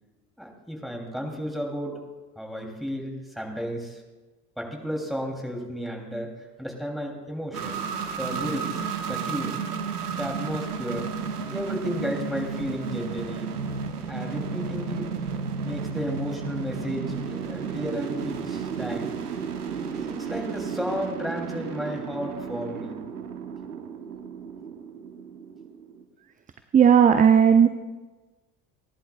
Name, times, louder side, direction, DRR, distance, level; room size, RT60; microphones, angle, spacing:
voice 1, 0.4-2.0 2.4-4.0 4.6-6.3 6.6-7.9 8.2-9.6 10.1-11.1 11.5-13.5 14.1-15.1 15.6-19.2 19.9-23.0, equal, ahead, 1 dB, 3.0 m, -33 dB
sound 1, 7.5-26.0, right 6 dB, 80° right, 1.0 m, -33 dB
voice 2, 26.7-27.7, right 8 dB, 20° right, 10 dB, 0.6 m, -15 dB
29.5 x 11.0 x 2.4 m, 1.2 s
figure-of-eight pair, 60°, 45 cm